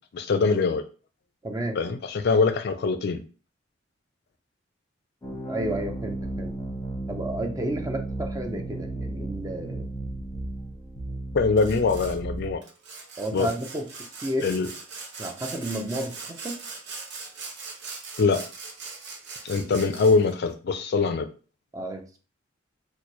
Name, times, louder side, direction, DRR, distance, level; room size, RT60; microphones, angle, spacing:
voice 1, 0.1-0.8 1.7-3.2 11.3-12.6 13.3-13.5 14.4-14.7 18.2-18.4 19.4-21.3, left 4 dB, 55° left, 9 dB, 0.4 m, -23 dB
voice 2, 1.4-1.8 5.5-6.5 7.1-9.9 13.2-13.9 14.2-14.5 15.2-16.6 19.6-19.7 21.7-22.0, right 1 dB, 20° right, 4 dB, 0.5 m, -31 dB
sound 1, 5.2-12.5, right 2 dB, 15° left, 0.8 m, -34 dB
Sawing, 11.6-12.2 12.6-20.3, right 4 dB, 60° right, 0.8 m, -40 dB
4.3 x 2.2 x 3.0 m, 0.36 s
head